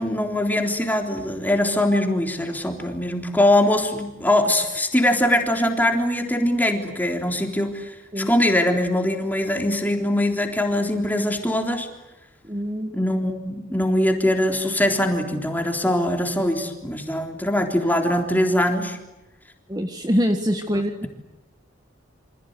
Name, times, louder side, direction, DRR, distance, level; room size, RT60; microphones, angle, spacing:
voice 1, 0.0-11.9 12.9-19.0, left 1 dB, 10° left, 3 dB, 3.7 m, -22 dB
voice 2, 12.5-12.9 19.7-21.1, equal, 20° right, 6 dB, 1.6 m, -24 dB
28.0 x 26.0 x 8.1 m, 0.99 s
head